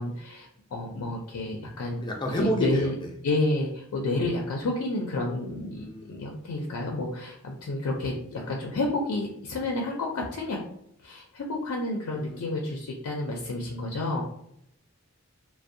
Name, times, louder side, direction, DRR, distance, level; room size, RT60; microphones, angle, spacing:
voice 1, 0.0-2.0 2.3-2.9 3.2-10.6 11.0-14.2, left 2 dB, 80° left, 0 dB, 0.4 m, -30 dB
voice 2, 2.0-2.9 5.8-6.1 12.1-12.4, equal, 20° left, 0 dB, 0.4 m, -29 dB
2.5 x 2.0 x 2.6 m, 0.73 s
head